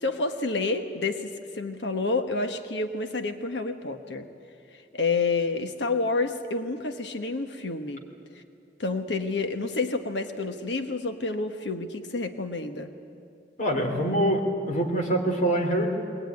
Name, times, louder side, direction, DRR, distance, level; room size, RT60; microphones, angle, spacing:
voice 1, 0.0-4.3 4.9-8.0 8.8-12.9, left 3 dB, 70° left, 7 dB, 1.2 m, -29 dB
voice 2, 13.6-15.9, right 1 dB, 45° left, 1 dB, 3.3 m, -25 dB
21.5 x 20.0 x 9.6 m, 2.5 s
head